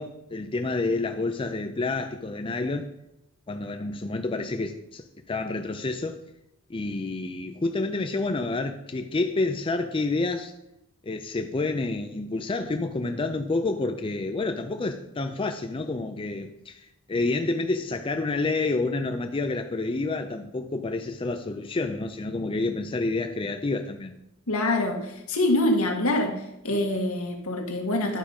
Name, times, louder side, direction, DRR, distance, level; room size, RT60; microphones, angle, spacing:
voice 1, 0.0-2.9 3.5-6.2 6.7-10.5 11.0-24.1, left 3 dB, 25° left, 0.4 m, -29 dB
voice 2, 24.5-26.3 26.6-28.2, left 1 dB, 75° left, 1.6 m, -25 dB
11.0 x 5.2 x 5.2 m
head